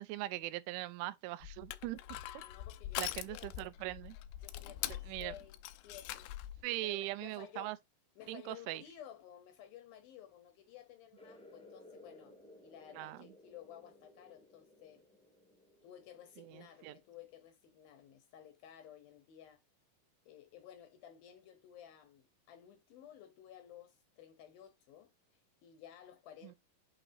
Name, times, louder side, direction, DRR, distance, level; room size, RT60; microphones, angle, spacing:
voice 1, 0.0-2.0 2.3-2.4 3.0-4.2 5.1-5.3 6.6-7.8 8.3-8.8 12.9-13.2 16.4-16.9 26.4-26.5, right 18 dB, 90° right, 3.1 m, -41 dB
Crushing, 1.4-6.6, left 14 dB, 90° left, 2.3 m, -43 dB
voice 2, 2.4-3.5 4.4-5.6 5.8-6.4 6.8-7.8 8.2-12.4 12.6-15.0 15.8-19.6 20.3-26.6, left 10 dB, 75° left, 2.2 m, -55 dB
sound 1, 11.1-17.3, left 2 dB, 5° left, 0.5 m, -60 dB
8.8 x 4.9 x 2.7 m
omnidirectional pair, 5.4 m